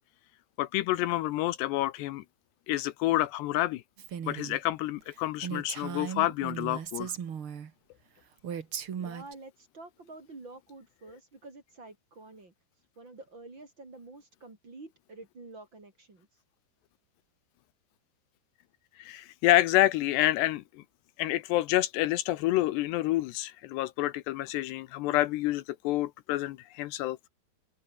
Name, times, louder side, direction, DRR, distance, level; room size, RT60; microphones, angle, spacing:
voice 1, 0.6-2.2 2.7-3.8 4.3-7.1 19.0-20.8 21.2-27.2, left 16 dB, 80° left, 2.9 m, -28 dB
Female speech woman speaking, 4.0-4.6 5.0-5.1 5.4-7.7 8.4-9.3, right 7 dB, 50° right, 1.7 m, -37 dB
voice 2, 9.0-12.5 13.0-16.3, right 3 dB, 25° right, 4.2 m, -48 dB
omnidirectional pair, 5.0 m